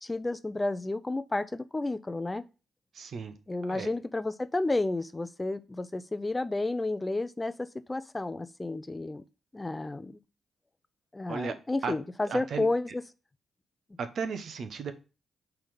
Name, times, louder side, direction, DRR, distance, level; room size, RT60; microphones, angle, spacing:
voice 1, 0.0-2.4 3.5-9.2 9.5-10.2 11.1-13.0, left 2 dB, 25° left, 0.5 m, -31 dB
voice 2, 2.9-3.3 3.7-3.9 11.3-11.5 11.8-11.9 12.3-12.7 14.0-14.9, right 5 dB, 65° right, 0.8 m, -35 dB
5.5 x 3.4 x 5.2 m
supercardioid pair, 45°, 0 cm